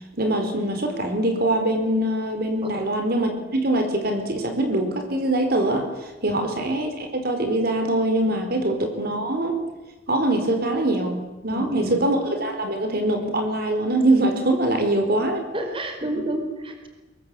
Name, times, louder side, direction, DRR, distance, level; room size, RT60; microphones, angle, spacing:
voice 1, 0.2-9.6 10.1-15.4, right 1 dB, 55° right, 5 dB, 4.5 m, -23 dB
voice 2, 11.5-12.1 15.5-16.9, right 1 dB, 30° right, 5 dB, 4.7 m, -30 dB
23.5 x 23.0 x 8.7 m, 1.1 s
head